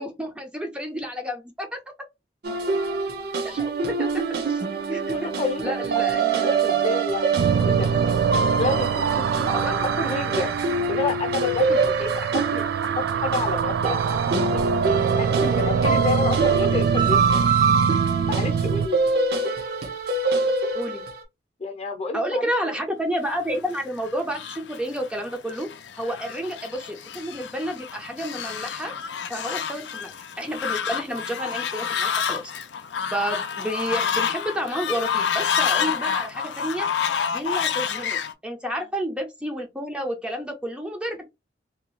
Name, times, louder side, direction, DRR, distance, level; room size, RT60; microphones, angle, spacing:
voice 1, 0.0-1.8 3.4-3.7 4.0-5.3 5.6-6.6 9.5-9.9 20.7-21.0 22.1-25.7 26.0-28.9 29.3-32.4 33.1-36.9 37.3-38.2 38.4-41.2, equal, 5° right, 0.5 m, -30 dB
sound 1, 2.4-21.2, right 4 dB, 60° right, 0.7 m, -25 dB
voice 2, 5.1-5.9 6.6-7.9 8.6-9.5 10.0-10.5 10.9-12.6 13.0-14.8 15.2-17.2 18.3-19.1 21.6-22.5 26.0-26.1 29.7-29.8, left 3 dB, 35° left, 0.7 m, -29 dB
sound 2, 7.4-18.9, right 6 dB, 85° right, 0.3 m, -25 dB
Fowl, 23.5-38.3, left 7 dB, 80° left, 0.4 m, -29 dB
2.7 x 2.3 x 2.9 m
head